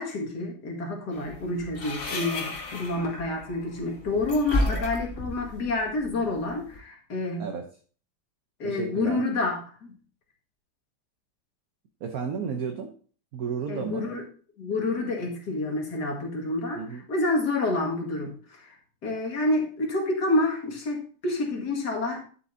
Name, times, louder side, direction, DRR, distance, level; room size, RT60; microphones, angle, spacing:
voice 1, 0.0-7.5 8.6-10.0 13.7-14.2 14.6-16.8 17.1-18.8 19.0-22.2, left 2 dB, 60° left, 0 dB, 2.5 m, -28 dB
sound 1, 1.1-6.8, left 1 dB, 35° left, 1.4 m, -33 dB
voice 2, 8.6-9.2 12.0-12.9 13.3-14.1 16.7-17.0, right 6 dB, 60° right, 5 dB, 1.2 m, -33 dB
11.0 x 7.1 x 2.7 m, 0.42 s
omnidirectional pair, 2.0 m